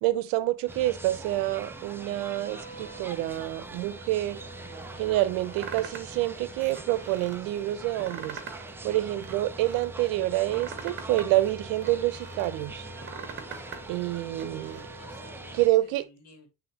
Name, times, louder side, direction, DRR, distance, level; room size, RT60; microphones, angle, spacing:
voice 1, 0.0-4.4 5.0-8.4 8.8-12.9 13.9-14.8 15.5-16.1, right 16 dB, 75° right, 0.8 m, -27 dB
sound 1, 0.7-15.7, right 2 dB, 5° right, 0.4 m, -43 dB
Wind instrument woodwind instrument, 0.8-15.7, right 3 dB, 20° left, 2.1 m, -48 dB
sound 2, 5.6-6.2 6.6-7.4 7.8-8.7 9.0-9.9 10.3-12.5 12.9-13.8 14.1-14.8, right 6 dB, 35° right, 1.7 m, -42 dB
voice 2, 14.2-16.5, left 3 dB, 50° left, 2.4 m, -55 dB
9.2 x 3.7 x 3.0 m
cardioid pair, 135°, 34 cm